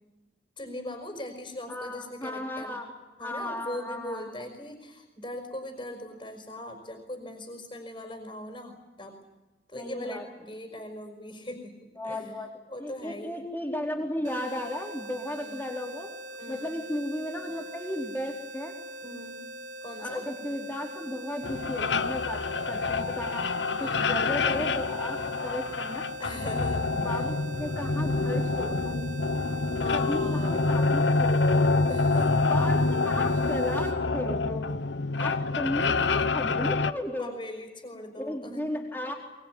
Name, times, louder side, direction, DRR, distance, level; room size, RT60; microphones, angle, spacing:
voice 1, 0.6-2.8 3.2-9.2 9.7-12.3 12.7-13.5 15.4-15.6 16.4-16.7 19.0-19.5 19.8-20.2 23.8-24.2 26.2-27.3 29.7-30.6 31.9-32.5 37.2-38.8, left 1 dB, 25° left, 3 dB, 5.1 m, -40 dB
voice 2, 1.7-2.9 3.2-4.5 9.7-10.2 12.0-12.5 12.8-16.1 16.5-18.7 20.0-23.5 23.8-26.0 26.9-28.9 29.9-31.7 32.5-34.7 35.2-37.3 38.2-39.1, left 1 dB, 10° left, 1 dB, 4.3 m, -35 dB
sound 1, 14.2-34.0, right 1 dB, 45° right, 3.9 m, -42 dB
sound 2, 21.4-36.9, left 3 dB, 85° left, 1.0 m, -27 dB
22.5 x 22.5 x 9.4 m, 1.2 s
head